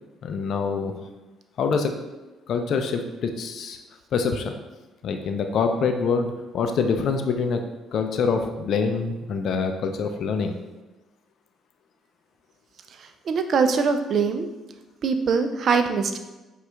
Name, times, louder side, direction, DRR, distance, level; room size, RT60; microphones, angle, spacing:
voice 1, 0.2-0.9 1.6-1.9 2.5-3.8 4.1-4.5 5.0-7.6 7.9-10.5, left 5 dB, 65° left, 6 dB, 0.4 m, -25 dB
voice 2, 13.3-14.4 15.0-16.2, right 5 dB, 60° right, 8 dB, 0.4 m, -22 dB
4.9 x 2.3 x 3.3 m, 1.1 s
hypercardioid pair, 55°, 0 cm